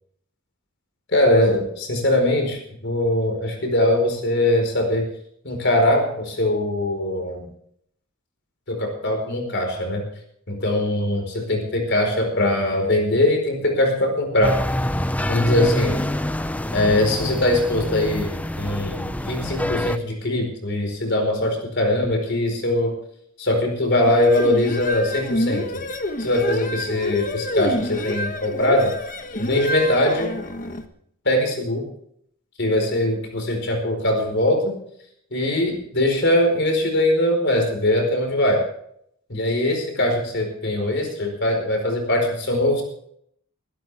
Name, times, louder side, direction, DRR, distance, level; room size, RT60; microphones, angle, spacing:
voice 1, 1.1-5.1 5.4-7.5 8.7-10.0 10.5-14.6 15.3-16.0 16.7-22.9 23.4-25.8 26.2-28.9 29.4-30.3 31.2-31.8 32.6-34.7 35.3-38.6 39.3-42.8, left 1 dB, 55° left, 3 dB, 4.7 m, -21 dB
sound 1, 14.4-20.0, left 1 dB, 5° left, 0.5 m, -26 dB
sound 2, 24.1-30.9, left 1 dB, 40° left, 1.3 m, -28 dB
23.0 x 12.0 x 3.5 m, 0.69 s
head